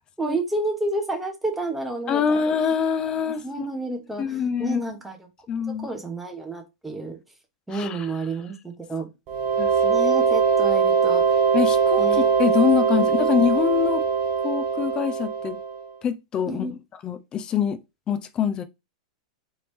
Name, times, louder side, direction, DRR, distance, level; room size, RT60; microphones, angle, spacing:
voice 1, 0.2-2.4 3.1-5.3 5.7-7.2 7.7-9.1 9.8-11.2 12.0-12.4 13.0-13.1 16.5-16.7, right 2 dB, 5° right, 0.9 m, -30 dB
voice 2, 2.1-3.7 4.2-4.8 5.5-5.9 7.7-8.0 9.6-9.7 11.5-14.0 14.4-15.6 16.0-17.8 18.1-18.6, left 8 dB, 20° left, 0.5 m, -24 dB
sound 1, 9.3-15.9, right 5 dB, 40° right, 0.8 m, -21 dB
3.9 x 3.2 x 3.5 m
supercardioid pair, 145°, 4 cm